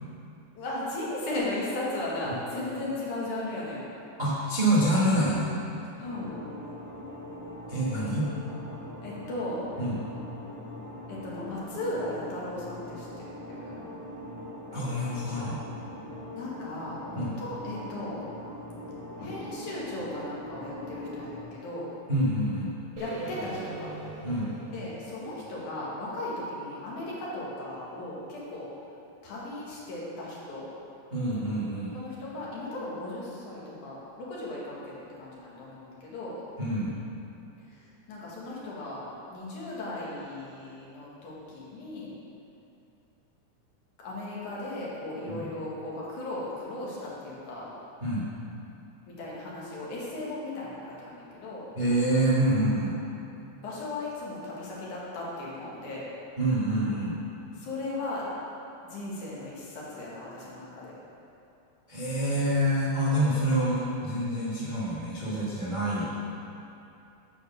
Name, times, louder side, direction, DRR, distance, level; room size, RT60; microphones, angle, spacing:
voice 1, 0.5-3.9 6.0-6.4 9.0-9.6 11.1-13.8 16.3-18.2 19.2-21.9 23.0-23.9 24.7-28.7 29.2-30.7 31.9-36.4 37.6-42.1 44.0-47.7 49.1-51.7 52.9-53.0 53.6-56.0 57.5-58.3 58.9-60.9, left 1 dB, 75° left, -6 dB, 3.2 m, -36 dB
voice 2, 4.2-5.5 7.7-8.2 9.8-9.9 14.7-15.6 17.2-17.3 22.1-22.7 24.2-24.5 31.1-31.9 36.6-36.9 45.2-45.4 48.0-48.3 51.8-53.0 56.4-57.2 61.9-66.1, right 1 dB, 90° right, -9 dB, 0.4 m, -26 dB
sound 1, 6.0-21.4, left 1 dB, 15° left, 1.8 m, -42 dB
sound 2, 23.0-27.0, right 2 dB, 60° right, 2.0 m, -42 dB
9.6 x 4.4 x 6.8 m, 2.7 s
omnidirectional pair, 3.5 m